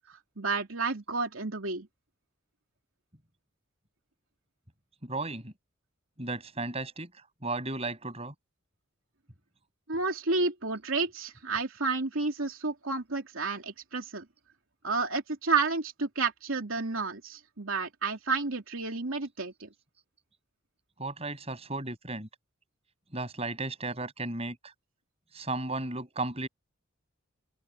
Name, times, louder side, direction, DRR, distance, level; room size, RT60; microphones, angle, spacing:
voice 1, 0.1-1.9 9.9-14.2 14.8-19.7, right 4 dB, 80° right, 2.9 m, -31 dB
voice 2, 5.0-5.5 6.2-8.3 21.0-22.3 23.1-24.7 25.3-26.5, right 2 dB, 30° right, 7.9 m, -35 dB
open air
head